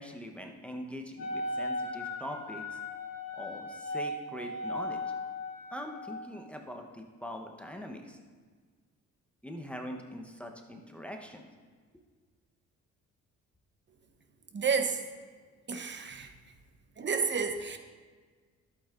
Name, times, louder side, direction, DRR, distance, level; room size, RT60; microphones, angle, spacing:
voice 1, 0.0-2.8 3.3-5.0 5.7-8.2 9.4-11.5, equal, 5° left, 3 dB, 0.9 m, -42 dB
Wind instrument woodwind instrument, 1.2-6.2, left 2 dB, 55° left, 1.3 m, -37 dB
voice 2, 14.5-15.0 15.7-16.3 17.0-17.8, right 5 dB, 35° right, 7 dB, 0.9 m, -30 dB
11.5 x 8.4 x 2.5 m, 1.5 s
cardioid pair, 90°, 30 cm